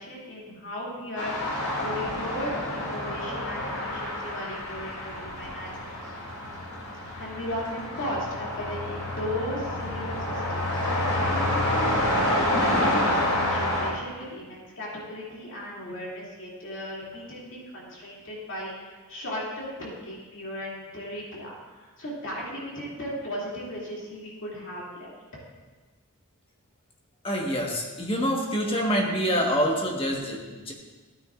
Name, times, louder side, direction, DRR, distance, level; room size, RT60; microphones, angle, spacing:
voice 1, 0.0-6.1 7.2-25.1, equal, 60° left, -5 dB, 2.6 m, -36 dB
sound 1, 1.2-13.9, left 1 dB, 80° left, 2.8 m, -28 dB
voice 2, 27.2-30.7, equal, 25° left, 0 dB, 1.3 m, -26 dB
14.5 x 9.5 x 2.5 m, 1.3 s
head